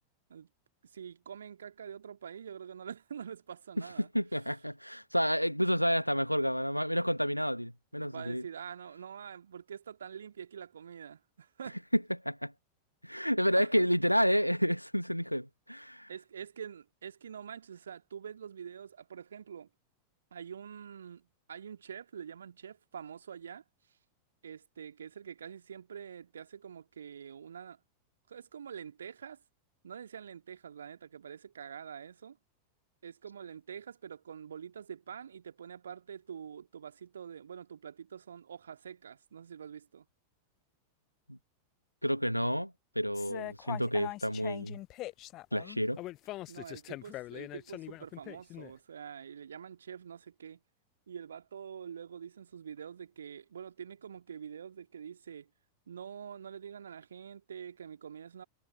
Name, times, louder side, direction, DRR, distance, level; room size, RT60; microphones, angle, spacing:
voice 1, 0.8-4.1 8.0-11.8 13.6-13.8 16.1-19.7 20.3-23.6 24.4-27.8 28.3-29.4 29.8-32.4 33.0-40.1 46.5-50.6 51.1-55.5 55.9-58.4, right 8 dB, 70° right, 2.0 m, -46 dB
voice 2, 4.1-8.4 11.9-12.5 13.0-16.1 41.3-41.4 42.0-44.8 45.5-46.0, equal, 90° left, 1.3 m, -30 dB
sound 1, 43.1-48.7, left 17 dB, 35° left, 0.6 m, -42 dB
figure-of-eight pair, 90°, 0 cm